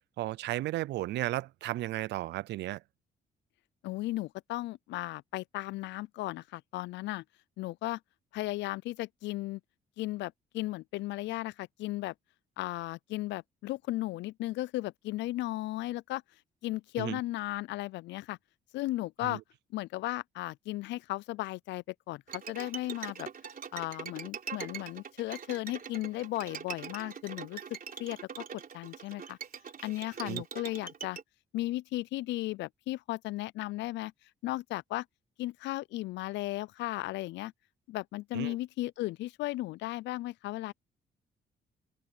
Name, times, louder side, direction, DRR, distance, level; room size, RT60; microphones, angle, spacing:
voice 1, 0.2-2.8 17.0-17.2 19.2-19.4 30.2-30.4 38.3-38.6, right 16 dB, 75° right, 0.4 m, -34 dB
voice 2, 3.8-7.2 7.6-8.0 8.3-9.6 10.0-12.1 12.6-16.2 16.6-18.4 18.7-19.4 19.7-23.3 23.7-29.4 29.8-31.2 31.5-34.1 34.4-35.1 35.4-37.5 37.9-40.7, left 17 dB, 80° left, 0.4 m, -35 dB
Bowed string instrument, 22.3-31.2, right 7 dB, 50° right, 3.8 m, -43 dB
open air
supercardioid pair, 70°, 18 cm